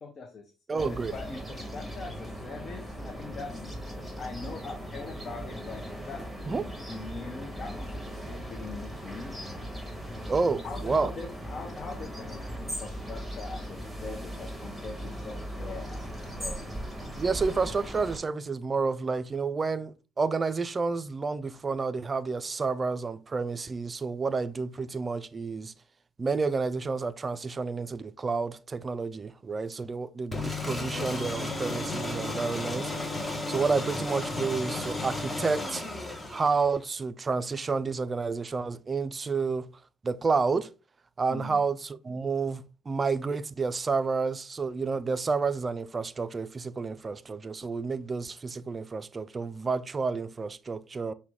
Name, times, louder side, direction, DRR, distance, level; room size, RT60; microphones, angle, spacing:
voice 1, 0.0-3.6 4.0-9.3 10.6-16.7 41.3-41.6, left 4 dB, 45° left, 0.7 m, -42 dB
voice 2, 0.7-1.1 6.5-6.6 10.3-11.1 17.2-25.7 26.2-35.8 36.3-39.7 40.0-40.7 41.2-51.1, right 4 dB, 30° right, 0.3 m, -30 dB
sound 1, 0.8-18.2, equal, 5° right, 1.6 m, -38 dB
sound 2, 30.3-36.8, left 2 dB, 15° left, 0.9 m, -33 dB
5.8 x 2.2 x 3.6 m
hypercardioid pair, 55°, 0 cm